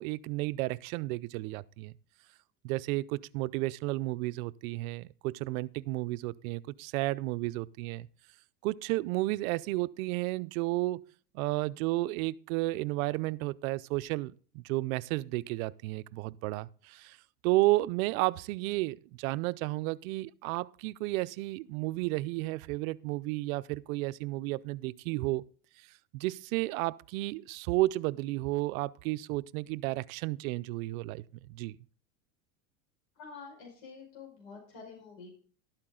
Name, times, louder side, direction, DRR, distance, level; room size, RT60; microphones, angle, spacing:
voice 1, 0.0-1.9 2.6-8.1 8.6-11.0 11.3-17.2 17.4-25.4 26.1-31.2 31.5-31.8, right 19 dB, 70° right, 0.6 m, -32 dB
voice 2, 33.2-35.3, left 5 dB, 65° left, 5.2 m, -48 dB
12.0 x 8.9 x 3.7 m
supercardioid pair, 155°, 44 cm